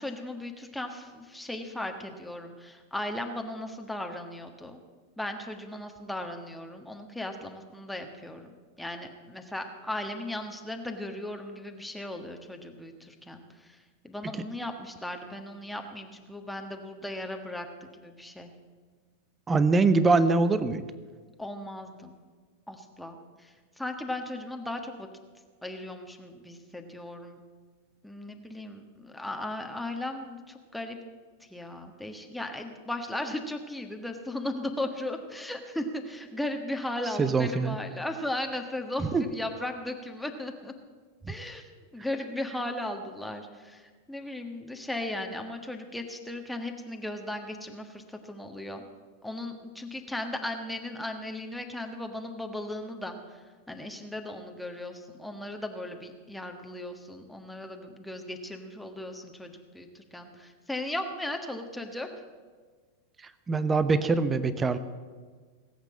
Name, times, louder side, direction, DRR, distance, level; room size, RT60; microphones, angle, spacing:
voice 1, 0.0-4.8 5.2-13.8 14.0-18.5 21.4-22.2 22.7-25.1 25.6-27.4 28.0-31.0 31.4-40.7 41.3-48.8 49.2-62.1, left 1 dB, 5° left, 4 dB, 1.4 m, -37 dB
voice 2, 19.5-20.8 37.2-37.8 39.1-39.2 41.2-41.3 63.5-64.8, right 3 dB, 15° right, 13 dB, 0.9 m, -23 dB
18.5 x 8.2 x 8.5 m, 1.5 s
figure-of-eight pair, 90°, 0 cm